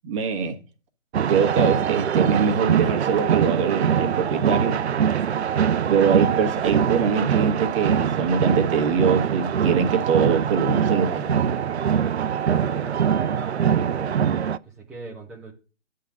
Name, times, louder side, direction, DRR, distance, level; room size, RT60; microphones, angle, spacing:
voice 1, 0.0-0.6 1.3-4.8 5.9-11.4, right 6 dB, 25° right, 1.3 m, -23 dB
sound 1, 1.1-14.6, right 8 dB, 60° right, 0.6 m, -23 dB
voice 2, 12.4-14.2 14.7-15.5, right 2 dB, ahead, 0.7 m, -39 dB
9.5 x 3.8 x 7.1 m
figure-of-eight pair, 140°, 36 cm